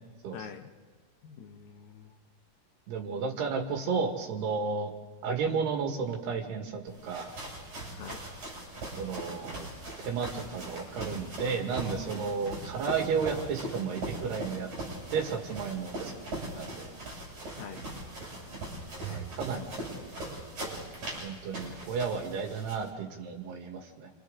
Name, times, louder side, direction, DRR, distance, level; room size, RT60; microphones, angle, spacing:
voice 1, 0.3-0.7 1.2-2.1 8.0-8.2 13.2-13.5 17.5-17.8 19.0-19.3 20.2-20.5, left 7 dB, 70° left, 5 dB, 2.6 m, -45 dB
voice 2, 2.9-4.9 5.2-7.3 9.0-9.7 10.0-14.7 15.1-16.9 19.1-19.7 21.2-24.1, right 5 dB, 90° right, 2 dB, 4.0 m, -33 dB
sound 1, 6.9-22.9, right 1 dB, 45° right, 8.3 m, -40 dB
28.5 x 26.0 x 3.9 m, 1.5 s
omnidirectional pair, 4.6 m